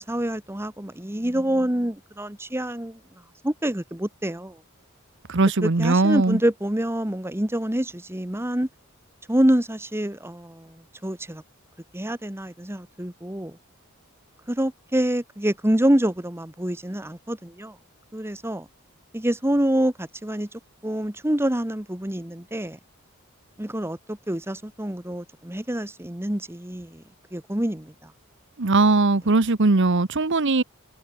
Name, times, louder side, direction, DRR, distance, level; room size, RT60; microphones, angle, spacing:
voice 1, 0.0-3.0 3.4-4.6 5.6-8.7 9.3-11.4 11.9-13.6 14.5-17.8 18.1-18.7 19.1-22.8 23.6-27.0 27.3-28.1, right 1 dB, 10° right, 1.4 m, -26 dB
voice 2, 5.3-6.4 28.6-30.6, right 3 dB, 55° right, 1.0 m, -20 dB
head